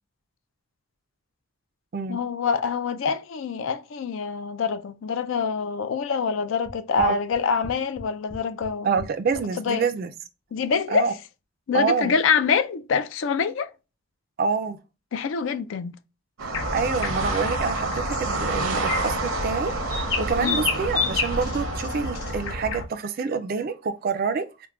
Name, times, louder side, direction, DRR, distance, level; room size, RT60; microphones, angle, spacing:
voice 1, 2.1-8.9 9.6-9.9 10.5-11.2 11.7-13.7 15.1-15.9 20.4-20.7, left 6 dB, 65° left, 0.4 m, -25 dB
sound 1, 6.6-9.5, equal, 35° left, 0.9 m, -39 dB
voice 2, 8.8-10.1 10.9-11.1 11.7-12.1 14.4-14.8 16.4-24.7, right 5 dB, 45° right, 0.3 m, -27 dB
sound 2, 16.4-22.5, right 3 dB, 80° right, 0.7 m, -30 dB
sound 3, 16.5-22.8, left 3 dB, 85° left, 1.1 m, -29 dB
4.5 x 2.1 x 2.3 m
head